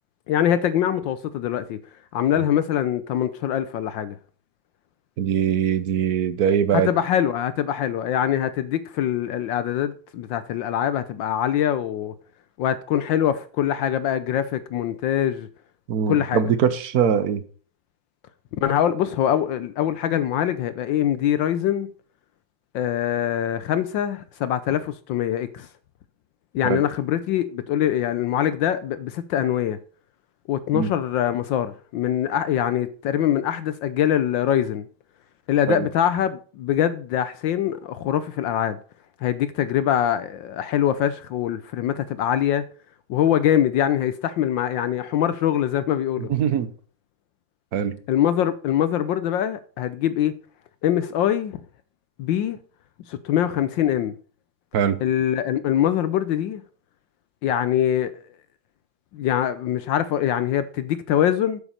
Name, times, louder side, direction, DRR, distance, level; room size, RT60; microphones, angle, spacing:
voice 1, 0.3-1.8 2.1-4.2 6.7-12.1 12.6-15.5 16.1-16.4 18.6-21.9 22.7-25.7 26.5-29.8 30.5-34.9 35.5-38.8 39.2-42.6 43.1-46.3 48.1-50.3 50.8-51.6 52.2-52.6 53.1-54.1 55.0-56.6 57.4-58.2 59.1-61.6, left 10 dB, 75° left, 1.3 m, -23 dB
voice 2, 5.2-6.9 15.9-17.4 26.6-26.8 30.7-30.9 35.7-35.9 46.2-46.7 47.7-48.0 54.7-55.0, right 8 dB, 55° right, 1.3 m, -22 dB
8.5 x 7.2 x 6.5 m
omnidirectional pair, 2.3 m